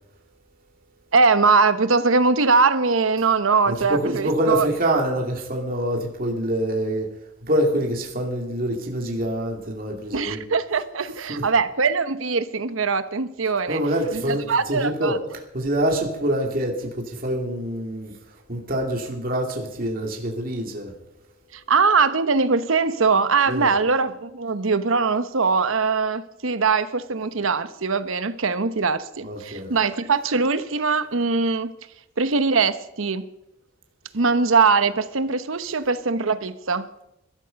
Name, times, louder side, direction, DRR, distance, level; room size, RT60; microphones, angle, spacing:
voice 1, 1.1-4.7 10.1-13.8 14.1-15.2 21.5-31.7 32.2-33.3 34.1-36.9, right 4 dB, 80° right, 1.0 m, -21 dB
voice 2, 3.7-7.1 7.4-10.4 11.3-11.5 13.7-20.9 23.5-23.7 29.2-29.7, right 1 dB, 45° right, 2.7 m, -26 dB
21.0 x 13.0 x 5.3 m
head